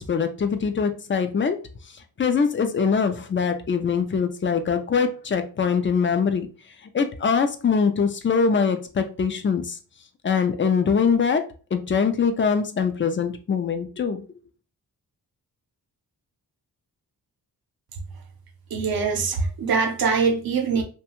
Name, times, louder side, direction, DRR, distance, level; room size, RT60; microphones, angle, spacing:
voice 1, 0.0-1.6 2.2-6.5 6.9-9.8 10.2-11.4 11.7-14.3, left 6 dB, 30° left, 0.4 m, -23 dB
voice 2, 18.7-20.8, right 5 dB, 65° right, 0.7 m, -23 dB
2.7 x 2.2 x 2.9 m
cardioid pair, 80°, 38 cm